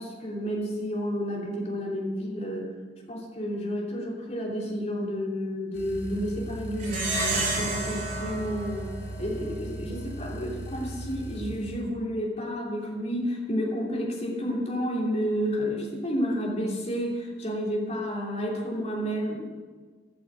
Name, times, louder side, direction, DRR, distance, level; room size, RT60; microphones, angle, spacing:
voice 1, 0.0-2.7 3.1-19.4, equal, 35° left, -3 dB, 3.1 m, -31 dB
sound 1, 5.7-11.8, right 1 dB, 70° left, 4.4 m, -38 dB
Plucked string instrument, 6.8-9.6, right 2 dB, 45° right, 4.1 m, -31 dB
11.5 x 8.7 x 8.4 m, 1.4 s
head